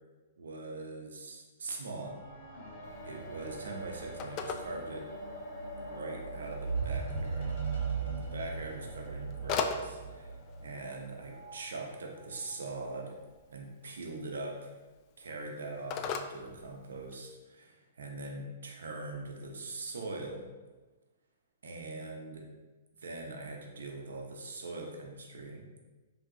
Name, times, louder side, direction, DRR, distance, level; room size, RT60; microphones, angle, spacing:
voice 1, 0.4-2.2 3.1-5.1 5.8-7.5 8.0-13.2 13.5-14.7 15.2-20.5 21.6-22.5 23.0-25.8, right 2 dB, 80° right, 1 dB, 0.8 m, -42 dB
sound 1, 2.0-11.5 12.3-12.4, right 4 dB, 65° left, 1.5 m, -39 dB
Telephone, 2.8-17.3, left 6 dB, 40° left, 0.3 m, -43 dB
4.8 x 2.9 x 2.8 m, 1.2 s
hypercardioid pair, 125°, 0 cm